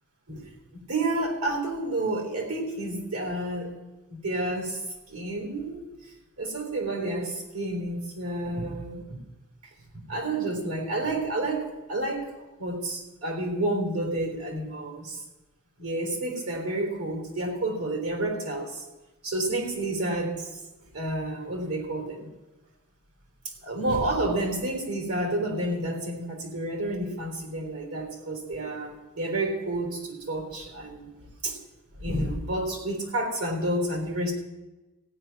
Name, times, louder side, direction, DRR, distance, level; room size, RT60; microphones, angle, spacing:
voice 1, 0.3-3.8 4.1-5.8 6.4-9.2 10.1-12.3 12.6-15.2 15.8-18.9 19.2-20.6 20.9-22.3 23.6-31.1 31.4-31.6 31.9-34.3, right 1 dB, 75° right, 2 dB, 3.7 m, -30 dB
15.5 x 5.9 x 9.5 m, 1.1 s
head